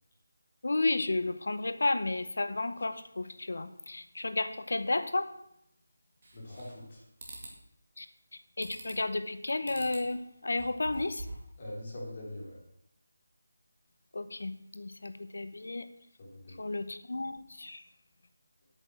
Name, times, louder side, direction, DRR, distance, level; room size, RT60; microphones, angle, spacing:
voice 1, 0.6-5.3 8.0-8.1 8.6-11.3 14.1-15.9 16.6-17.8, left 2 dB, 65° left, 11 dB, 0.8 m, -32 dB
sound 1, 6.2-6.9 7.2-7.6 8.6-9.1 9.6-10.1 10.5-11.5, right 2 dB, 30° right, 2.2 m, -45 dB
voice 2, 6.3-7.0 11.6-12.6 16.2-16.6, left 1 dB, 25° left, -5 dB, 3.6 m, -42 dB
8.7 x 6.9 x 7.6 m, 0.76 s
figure-of-eight pair, 175°, 0 cm